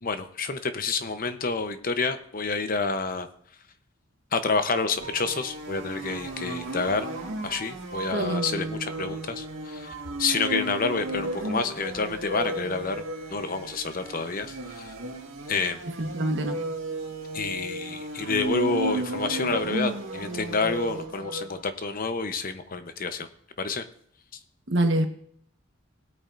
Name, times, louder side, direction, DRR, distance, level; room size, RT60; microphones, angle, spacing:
voice 1, 0.0-3.3 4.3-7.1 7.4-9.9 10.2-13.0 13.3-14.9 15.5-15.9 17.3-23.3 23.6-23.8, left 4 dB, 45° left, 9 dB, 0.8 m, -29 dB
sound 1, 5.0-21.6, right 1 dB, 75° right, 2.0 m, -34 dB
voice 2, 8.0-8.4 16.0-16.6 24.7-25.1, right 1 dB, 60° right, 5 dB, 1.3 m, -25 dB
19.5 x 8.6 x 2.6 m, 0.64 s
head